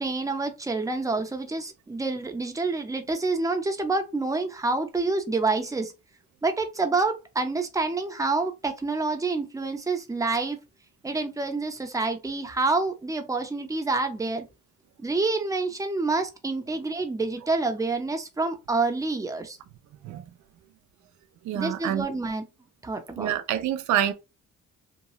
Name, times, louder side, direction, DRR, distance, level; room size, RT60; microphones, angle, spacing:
voice 1, 0.0-5.9 6.4-10.6 11.0-14.5 15.0-19.6 21.5-22.4 22.8-23.3, right 3 dB, 10° right, 0.6 m, -27 dB
voice 2, 21.5-22.1 23.2-24.1, right 11 dB, 70° right, 0.5 m, -26 dB
2.8 x 2.2 x 3.0 m
cardioid pair, 90°, 30 cm